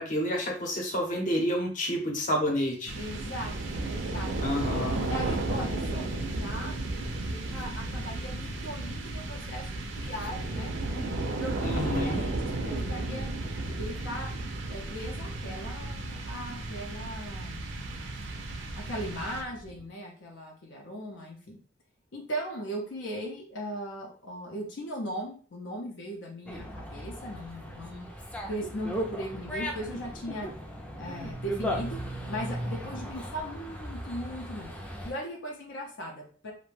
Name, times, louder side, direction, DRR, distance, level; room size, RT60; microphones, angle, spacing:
voice 1, 0.0-2.9 4.4-5.0 11.6-12.2, equal, 45° left, 0 dB, 0.7 m, -29 dB
sound 1, 2.9-19.8, right 2 dB, 85° right, 0.5 m, -33 dB
voice 2, 3.0-4.3 4.9-6.8 7.3-10.7 11.0-13.3 13.7-14.3 14.7-18.0 18.8-21.6 22.1-28.1 28.5-30.5 31.0-32.0 32.3-34.7 35.0-36.5, equal, 75° left, -1 dB, 0.6 m, -38 dB
Dog, 26.5-35.1, equal, 5° left, 0.4 m, -37 dB
2.5 x 2.1 x 3.1 m, 0.43 s
head